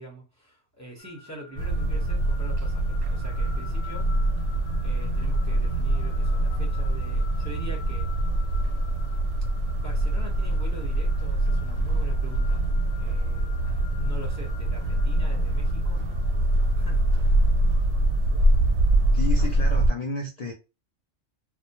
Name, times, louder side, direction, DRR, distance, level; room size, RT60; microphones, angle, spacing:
voice 1, 0.0-4.1 4.8-8.1 9.7-12.6 13.0-13.7 13.9-16.0 16.7-17.3, equal, 15° right, 0.8 m, -43 dB
sound 1, 1.0-19.8, left 7 dB, 90° left, 1.0 m, -49 dB
sound 2, 1.6-19.9, right 1 dB, 90° right, 1.0 m, -24 dB
voice 2, 19.1-20.5, left 2 dB, 65° left, 0.4 m, -32 dB
2.2 x 2.2 x 2.9 m
omnidirectional pair, 1.3 m